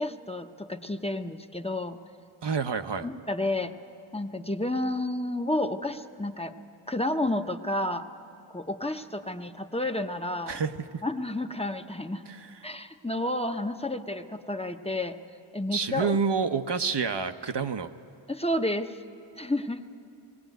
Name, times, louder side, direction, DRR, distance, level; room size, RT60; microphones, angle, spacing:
voice 1, 0.0-2.0 3.0-3.7 4.1-6.5 6.9-8.1 8.5-10.6 11.0-12.2 12.6-15.2 15.5-16.2 18.3-19.0 19.4-19.8, left 1 dB, 15° left, 6 dB, 0.8 m, -30 dB
voice 2, 2.4-3.1 10.5-11.0 12.3-12.5 15.7-17.9, right 5 dB, 60° right, 8 dB, 0.8 m, -28 dB
20.0 x 16.5 x 9.2 m, 2.7 s
wide cardioid pair, 45°, 47 cm